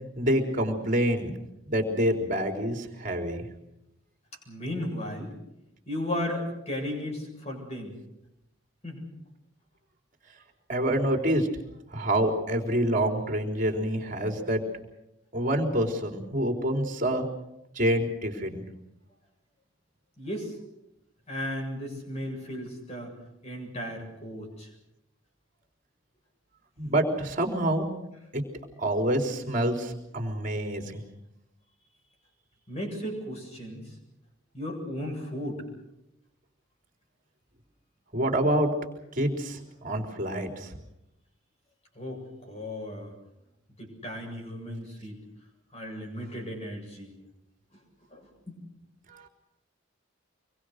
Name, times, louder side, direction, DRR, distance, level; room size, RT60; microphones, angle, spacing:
voice 1, 0.2-1.3 1.7-3.5 10.7-11.5 11.9-14.6 15.3-17.3 17.8-18.6 26.8-27.9 28.3-28.4 28.8-31.0 38.1-38.7 39.2-40.7 49.1-49.3, right 1 dB, 40° right, 4 dB, 3.9 m, -27 dB
voice 2, 4.5-5.3 5.9-7.9 8.8-9.0 20.2-20.5 21.3-23.1 23.4-24.7 32.7-33.8 34.5-35.6 42.0-43.1 43.8-45.2 45.7-47.1 48.1-48.6, left 1 dB, 30° left, 1 dB, 7.6 m, -35 dB
26.0 x 23.0 x 6.6 m, 0.85 s
head